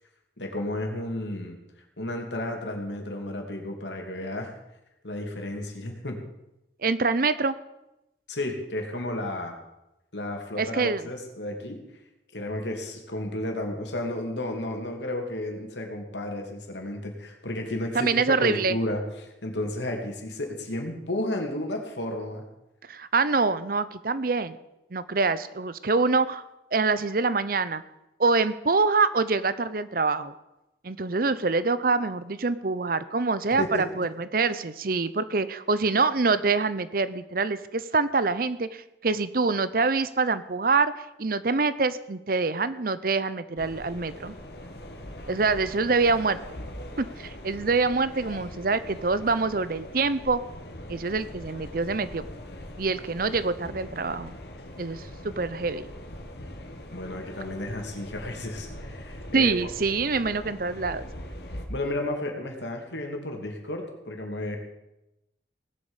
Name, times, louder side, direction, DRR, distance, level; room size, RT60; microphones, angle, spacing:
voice 1, 0.4-1.6 2.0-4.5 5.0-6.2 8.3-9.5 10.1-11.8 12.3-18.1 18.4-19.0 19.4-22.4 33.6-33.8 56.9-59.6 61.7-64.6, left 1 dB, 80° left, 2 dB, 2.9 m, -32 dB
voice 2, 6.8-7.6 10.6-11.1 17.9-18.8 22.8-24.6 24.9-26.4 26.7-27.8 28.2-30.3 30.8-44.3 45.3-46.4 47.0-50.4 50.9-52.2 52.8-54.3 54.8-55.9 59.3-61.0, right 4 dB, 50° right, 14 dB, 0.7 m, -25 dB
sound 1, 43.6-61.7, left 1 dB, 65° left, 2.0 m, -41 dB
18.0 x 8.4 x 7.3 m, 0.91 s
head